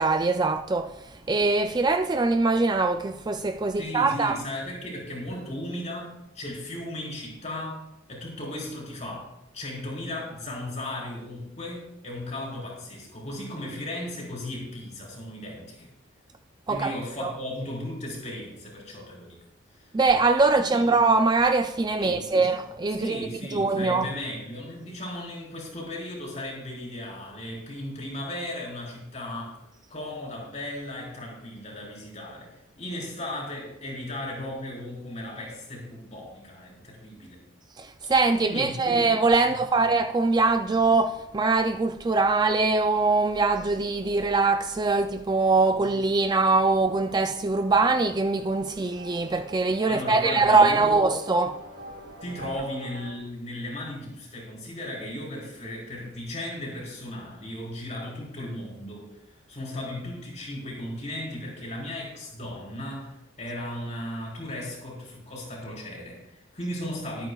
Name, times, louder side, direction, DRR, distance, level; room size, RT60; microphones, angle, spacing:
voice 1, 0.0-4.4 16.7-16.9 17.2-17.3 19.9-24.1 37.8-51.6, right 3 dB, 20° right, 0.4 m, -23 dB
voice 2, 3.8-9.3 9.5-15.9 16.7-19.4 19.8-19.9 20.6-20.8 22.0-22.4 22.9-29.6 29.9-37.4 38.4-39.1 39.5-39.8 45.8-45.9 49.9-51.0 52.2-59.1 59.5-67.3, left 1 dB, 35° left, 4.5 m, -36 dB
sound 1, 45.3-53.2, right 1 dB, 65° right, 2.7 m, -46 dB
22.5 x 8.9 x 2.4 m
head